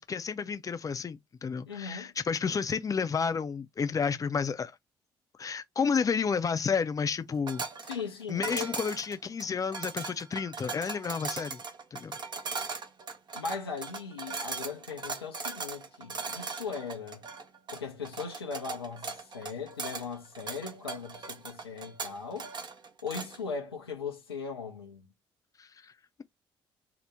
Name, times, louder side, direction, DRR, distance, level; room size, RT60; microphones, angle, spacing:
voice 1, 0.0-4.7 5.4-7.7 8.3-11.6 11.9-12.2 25.6-25.9, left 5 dB, 30° left, 0.5 m, -31 dB
voice 2, 1.7-2.1 7.8-8.8 13.3-17.2 17.7-22.5 23.0-25.1, left 5 dB, 90° left, 0.5 m, -38 dB
sound 1, 7.5-23.4, right 4 dB, 35° right, 0.7 m, -39 dB
2.7 x 2.1 x 3.4 m
figure-of-eight pair, 45°, 12 cm